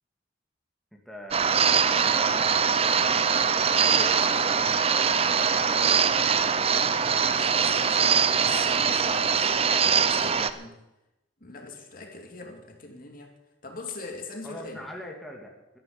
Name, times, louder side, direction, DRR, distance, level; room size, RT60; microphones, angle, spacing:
voice 1, 0.9-2.8 3.7-4.9 5.2-6.1 14.4-15.8, equal, ahead, 0 dB, 2.0 m, -44 dB
sound 1, 1.3-10.5, right 6 dB, 30° right, 0.6 m, -23 dB
voice 2, 3.8-4.5 7.2-10.8 11.4-13.4 13.6-14.8, left 3 dB, 50° left, 2 dB, 2.4 m, -42 dB
17.5 x 12.5 x 5.1 m, 0.94 s
head